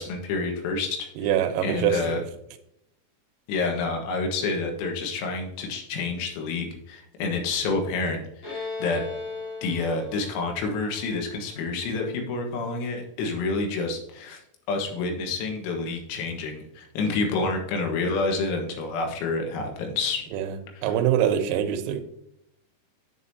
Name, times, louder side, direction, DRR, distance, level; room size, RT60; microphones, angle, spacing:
voice 1, 0.0-1.0 1.6-2.2 3.5-8.2 8.5-9.0 9.6-14.4 14.7-20.2 20.8-20.9, left 3 dB, 85° left, 3 dB, 4.1 m, -28 dB
voice 2, 1.2-2.2 20.3-20.6 20.8-22.0, right 10 dB, 85° right, 7 dB, 3.5 m, -24 dB
Bowed string instrument, 8.4-12.0, left 3 dB, 35° left, 4.4 m, -37 dB
8.6 x 8.0 x 2.7 m, 0.77 s
omnidirectional pair, 5.9 m